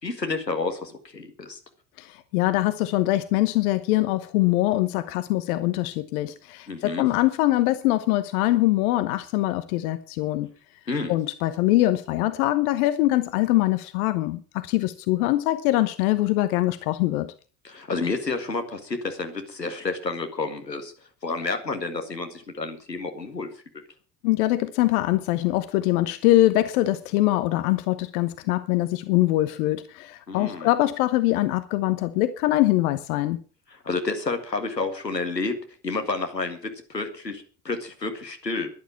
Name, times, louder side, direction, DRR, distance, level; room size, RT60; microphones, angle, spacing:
voice 1, 0.0-1.6 6.7-7.1 10.9-11.2 17.6-20.9 21.2-23.5 30.3-30.7 33.7-35.5 35.8-38.7, left 3 dB, 90° left, 6 dB, 1.9 m, -30 dB
voice 2, 2.0-10.5 11.1-17.3 24.2-33.4, left 16 dB, 60° left, 13 dB, 1.1 m, -23 dB
11.5 x 11.5 x 7.3 m, 0.39 s
figure-of-eight pair, 60°, 48 cm